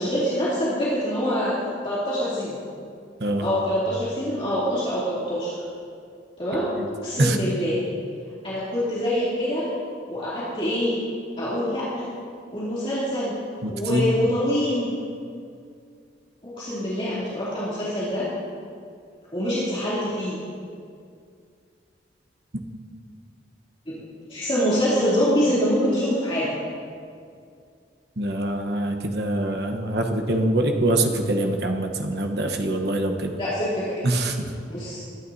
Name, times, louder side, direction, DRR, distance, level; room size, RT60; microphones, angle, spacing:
voice 1, 0.0-1.6 1.8-2.6 3.4-5.5 6.4-6.7 7.0-7.8 8.4-9.7 10.1-11.0 11.4-12.1 12.5-13.3 13.7-14.9 16.4-18.3 19.3-20.4 23.9-24.0 24.3-26.6 33.3-34.0 34.7-35.0, equal, 30° left, -11 dB, 3.0 m, -25 dB
voice 2, 13.6-14.1 28.2-33.4 34.0-34.5, right 1 dB, 60° right, 4 dB, 1.1 m, -24 dB
21.0 x 11.0 x 2.8 m, 2.3 s
head